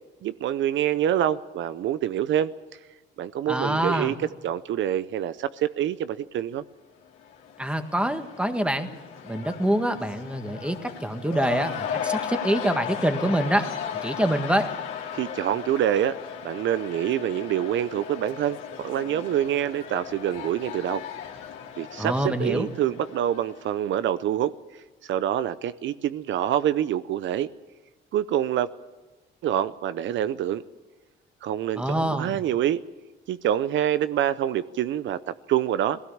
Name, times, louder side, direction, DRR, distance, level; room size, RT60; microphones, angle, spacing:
voice 1, 0.2-2.5 3.2-4.1 4.4-6.6 15.1-16.2 16.4-21.0 21.8-24.5 25.0-27.5 28.1-28.7 29.4-30.6 31.4-32.8 33.3-36.0, right 11 dB, 75° right, 14 dB, 0.6 m, -26 dB
voice 2, 3.5-4.2 7.6-8.9 9.3-13.7 14.0-14.7 22.0-22.7 31.8-32.4, right 1 dB, 5° right, 7 dB, 1.6 m, -25 dB
Cheering / Crowd, 7.1-23.9, left 8 dB, 90° left, 2.5 m, -36 dB
19.0 x 16.5 x 8.6 m, 1.2 s
cardioid pair, 90°, 20 cm